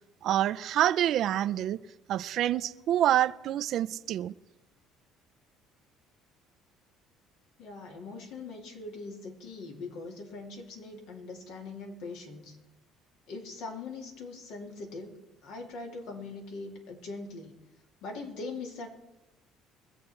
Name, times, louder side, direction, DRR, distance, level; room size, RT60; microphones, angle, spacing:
voice 1, 0.2-1.8 2.1-4.3, right 12 dB, 65° right, 0.5 m, -27 dB
voice 2, 7.6-12.6 13.3-17.6 18.0-18.9, left 3 dB, 80° left, 2.7 m, -41 dB
22.0 x 7.7 x 4.4 m
supercardioid pair, 90°, 0 cm